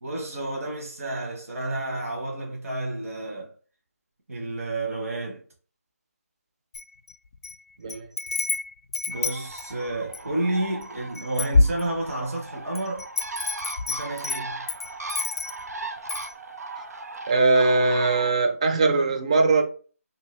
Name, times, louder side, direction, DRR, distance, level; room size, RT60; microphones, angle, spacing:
voice 1, 0.0-3.5 4.3-5.4 9.1-13.1 13.9-14.7, right 2 dB, 65° right, 1.0 m, -30 dB
Wind chime, 6.7-7.5 7.9-10.3 10.8-10.9 11.1-12.3 12.7-15.7 16.1-16.3, left 3 dB, 65° left, 0.4 m, -27 dB
Bird, 9.1-18.3, right 3 dB, 85° right, 0.5 m, -38 dB
voice 2, 17.3-19.6, right 3 dB, 25° right, 0.4 m, -20 dB
2.7 x 2.6 x 3.0 m
figure-of-eight pair, 165°, 8 cm